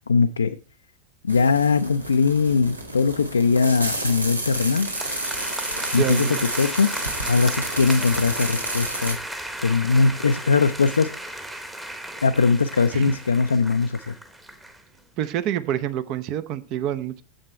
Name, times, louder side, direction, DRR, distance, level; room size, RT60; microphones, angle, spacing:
voice 1, 0.1-0.6 1.2-4.9 5.9-6.9 7.3-9.2 9.6-11.5 12.2-14.2, left 4 dB, 75° left, 0.4 m, -21 dB
sound 1, 1.3-9.1, right 1 dB, 80° right, 1.7 m, -31 dB
sound 2, 4.5-14.8, right 1 dB, 5° right, 1.1 m, -35 dB
voice 2, 6.0-6.5 12.9-13.1 15.2-17.2, right 11 dB, 40° right, 0.7 m, -27 dB
8.9 x 7.5 x 4.4 m
figure-of-eight pair, 90°, 0 cm